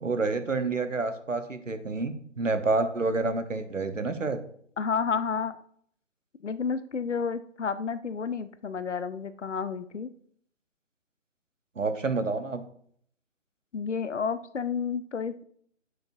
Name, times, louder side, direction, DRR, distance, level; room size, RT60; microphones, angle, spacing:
voice 1, 0.0-4.4 11.8-12.6, right 3 dB, 85° right, 9 dB, 1.0 m, -28 dB
voice 2, 4.8-5.5 6.4-10.1 13.7-15.4, left 6 dB, 70° left, 13 dB, 0.7 m, -30 dB
9.4 x 6.5 x 2.7 m, 0.62 s
figure-of-eight pair, 145°, 37 cm